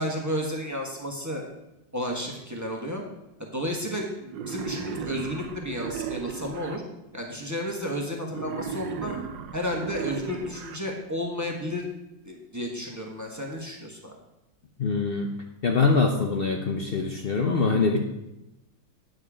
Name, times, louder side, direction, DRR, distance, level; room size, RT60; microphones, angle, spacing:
voice 1, 0.0-1.4 1.9-3.0 3.4-6.8 7.1-9.2 9.5-11.9 12.2-14.2, equal, 10° right, 0 dB, 1.2 m, -32 dB
Wild animals, 4.3-6.8 8.3-10.8, right 7 dB, 75° right, 1.5 m, -35 dB
voice 2, 14.8-15.3 15.6-18.0, left 4 dB, 80° left, 2 dB, 0.5 m, -24 dB
9.1 x 7.7 x 4.9 m, 0.92 s
omnidirectional pair, 2.1 m